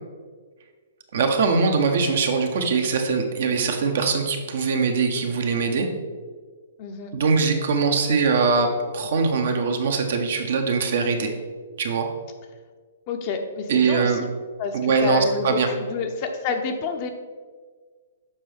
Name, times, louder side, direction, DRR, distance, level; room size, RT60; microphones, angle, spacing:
voice 1, 1.1-5.9 7.1-8.7 8.9-11.3 11.8-12.1 13.7-14.2 14.7-15.7, right 4 dB, 60° right, 4 dB, 0.9 m, -22 dB
voice 2, 6.8-7.1 13.1-14.3 14.6-17.1, left 5 dB, 40° left, 5 dB, 0.7 m, -29 dB
7.2 x 5.3 x 3.4 m, 1.5 s
figure-of-eight pair, 120°, 0 cm